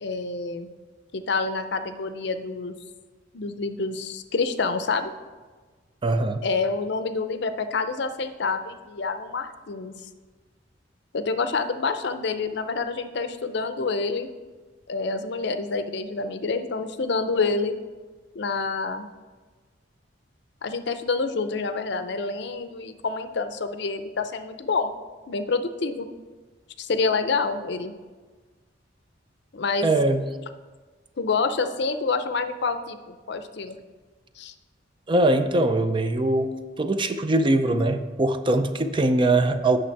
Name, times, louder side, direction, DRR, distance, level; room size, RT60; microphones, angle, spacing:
voice 1, 0.0-0.7 1.1-2.7 3.3-5.1 6.4-9.9 11.1-14.3 14.9-17.7 18.3-19.1 20.6-24.9 25.3-26.1 26.8-27.9 29.5-29.9 31.2-33.8 34.4-34.5, left 4 dB, 65° left, 10 dB, 0.6 m, -27 dB
voice 2, 6.0-6.4 29.8-30.2 35.1-39.8, right 2 dB, 25° right, 9 dB, 0.4 m, -22 dB
8.7 x 6.4 x 4.6 m, 1.4 s
head